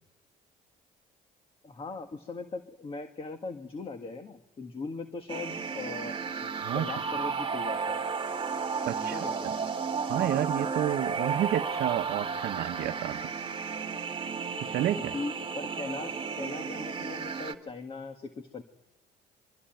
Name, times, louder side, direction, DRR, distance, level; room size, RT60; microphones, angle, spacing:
voice 1, 1.6-8.0 9.1-9.5 15.0-18.6, left 3 dB, 35° left, 7 dB, 1.9 m, -39 dB
sound 1, 5.3-17.5, right 5 dB, 30° right, 2.1 m, -33 dB
voice 2, 6.6-6.9 8.9-9.5 10.1-13.3 14.6-15.2, right 12 dB, 70° right, 8 dB, 1.0 m, -30 dB
25.5 x 25.0 x 9.2 m, 0.87 s
cardioid pair, 110°, 17 cm